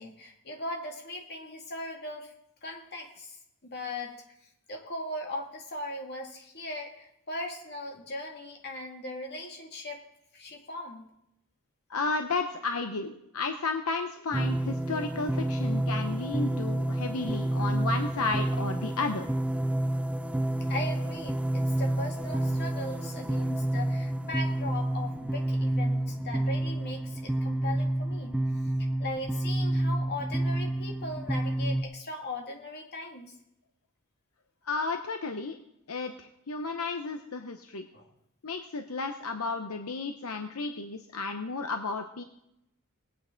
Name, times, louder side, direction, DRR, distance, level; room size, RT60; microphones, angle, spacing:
voice 1, 0.0-2.3 2.6-4.2 4.7-10.0 10.3-11.1 20.7-28.4 28.8-33.3 37.9-38.1, left 1 dB, 50° left, 1 dB, 2.3 m, -39 dB
voice 2, 11.9-19.3 34.7-35.6 35.9-37.9 38.4-42.2, left 3 dB, 80° left, 5 dB, 0.8 m, -33 dB
sound 1, 14.3-31.8, right 1 dB, 5° right, 0.4 m, -29 dB
20.0 x 8.6 x 3.9 m, 0.82 s
head